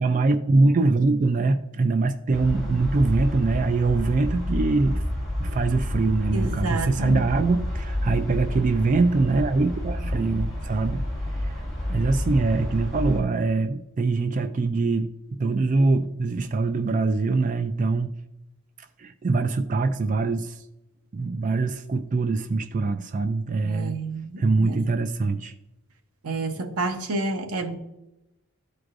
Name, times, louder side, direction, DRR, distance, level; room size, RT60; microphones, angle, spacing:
voice 1, 0.0-5.0 5.4-11.0 11.9-15.1 15.4-18.1 19.0-20.5 21.1-24.0 24.4-25.5, right 3 dB, 35° right, 0.3 m, -23 dB
sound 1, 2.3-13.2, left 1 dB, ahead, 1.9 m, -29 dB
voice 2, 6.3-7.5 23.6-24.8 26.2-27.8, right 2 dB, 90° right, 0.9 m, -30 dB
12.5 x 4.7 x 2.5 m
head